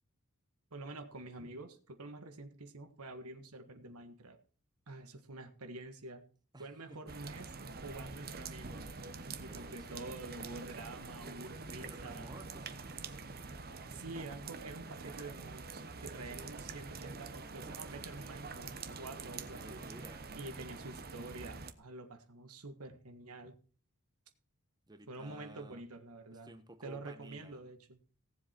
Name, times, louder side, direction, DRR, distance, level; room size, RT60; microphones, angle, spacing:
voice 1, 0.7-4.4 4.9-6.2 6.6-7.5 7.8-8.9 9.2-12.3 13.9-19.8 20.4-23.6 25.1-26.5 26.8-28.0, right 2 dB, 80° right, 1.5 m, -48 dB
voice 2, 6.5-7.2 9.2-10.3 11.8-13.2 17.6-18.0 19.4-20.3 24.9-25.8 26.3-27.6, right 1 dB, 20° right, 1.1 m, -55 dB
sound 1, 7.1-21.7, right 4 dB, 45° right, 1.0 m, -46 dB
17.5 x 7.7 x 4.4 m
head